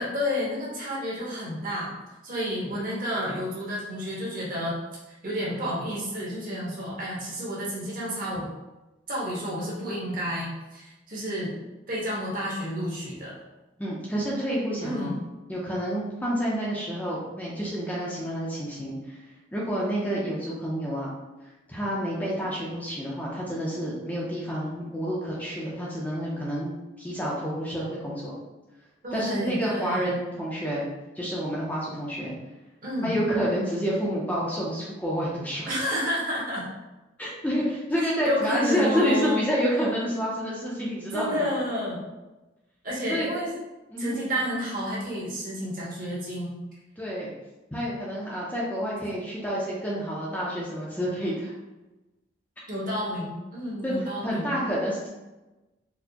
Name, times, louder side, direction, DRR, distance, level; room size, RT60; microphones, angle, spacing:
voice 1, 0.0-1.9 2.2-4.8 5.2-8.5 9.1-11.5 11.9-13.4 14.8-15.2 29.0-30.1 32.8-33.1 35.7-36.7 38.0-39.5 41.1-42.1 42.8-43.5 44.0-46.6 52.7-54.5, equal, 45° right, -5 dB, 1.0 m, -30 dB
voice 2, 13.8-15.1 15.5-19.2 19.5-21.1 21.7-26.7 27.0-28.4 29.1-30.9 31.1-32.3 33.0-35.7 37.2-41.5 43.1-43.3 43.9-44.2 47.0-47.3 47.7-51.5 53.8-53.9 54.2-55.1, equal, 10° left, -6 dB, 0.5 m, -29 dB
4.2 x 2.0 x 2.8 m, 1.1 s
head